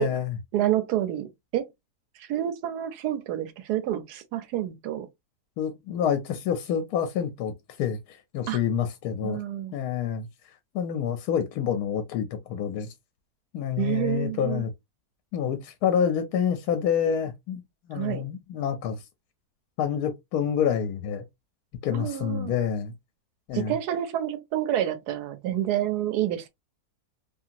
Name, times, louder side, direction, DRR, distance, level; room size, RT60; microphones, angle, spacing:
voice 1, 0.0-0.3 5.6-7.5 7.8-9.4 9.7-10.3 10.7-12.9 13.5-14.7 15.3-17.6 17.9-19.0 19.8-21.2 21.8-22.9 23.5-23.7, left 8 dB, 75° left, 1.1 m, -27 dB
voice 2, 0.5-1.7 2.1-5.1 8.5-8.6 9.2-9.7 13.8-14.7 17.9-18.3 21.9-22.5 23.5-26.5, right 12 dB, 80° right, 1.1 m, -28 dB
2.8 x 2.8 x 2.4 m
omnidirectional pair, 1.7 m